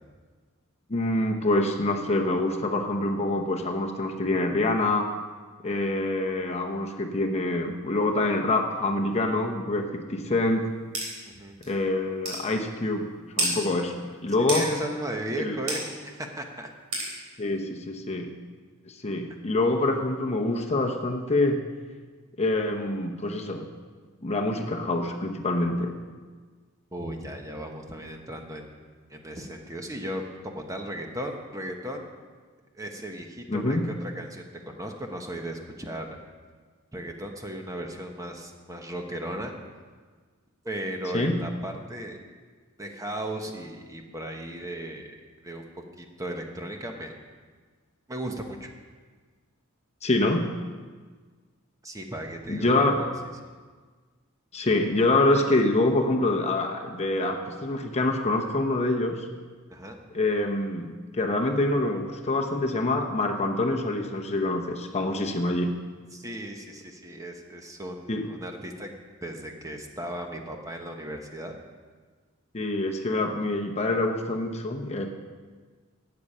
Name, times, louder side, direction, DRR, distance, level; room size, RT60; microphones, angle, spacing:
voice 1, 0.9-5.1 5.6-10.7 11.7-13.1 13.4-14.7 15.4-15.6 17.4-18.3 18.9-21.6 22.4-23.6 24.2-25.9 33.5-33.9 41.1-41.4 50.0-50.5 52.5-53.0 54.5-59.3 60.1-65.7 68.1-68.3 72.5-75.1, left 2 dB, 30° left, 3 dB, 0.9 m, -26 dB
sound 1, 10.9-11.1 11.6-11.7 12.2-12.4 13.4-13.5 14.5-14.7 15.7-15.8 16.9-17.1, right 2 dB, 80° right, 3.7 m, -27 dB
voice 2, 11.2-11.6 14.5-16.7 26.9-28.7 29.1-32.1 32.7-36.1 36.9-39.5 40.6-42.2 42.8-45.1 45.4-45.7 46.0-47.1 48.1-48.7 51.8-52.8 59.7-60.0 66.1-68.9 69.2-71.5, right 1 dB, 15° right, 3 dB, 1.0 m, -36 dB
12.5 x 8.7 x 5.5 m, 1.5 s
head